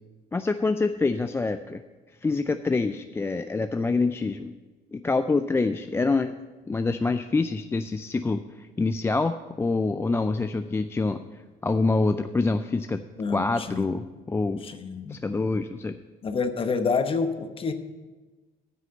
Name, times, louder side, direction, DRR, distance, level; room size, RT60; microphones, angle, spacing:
voice 1, 0.3-1.8 2.2-4.5 4.9-6.3 6.7-11.2 11.6-13.0 13.3-14.6 15.1-16.0, left 3 dB, 15° left, 8 dB, 0.3 m, -26 dB
voice 2, 13.2-13.8 14.6-15.2 16.2-17.7, left 5 dB, 30° left, 8 dB, 1.0 m, -28 dB
9.4 x 6.3 x 7.8 m, 1.3 s
cardioid pair, 110°, 17 cm